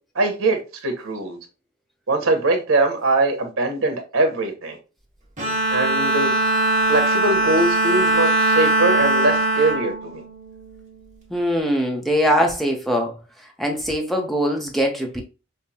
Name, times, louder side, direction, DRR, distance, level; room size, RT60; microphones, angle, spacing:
voice 1, 0.1-1.4 2.1-4.8 5.7-6.3 6.9-10.2, right 2 dB, 85° right, 1.1 m, -22 dB
Bowed string instrument, 5.4-10.9, right 1 dB, 35° right, 1.5 m, -21 dB
voice 2, 11.3-13.2 13.6-15.2, equal, ahead, 0.6 m, -22 dB
5.4 x 2.1 x 2.8 m
head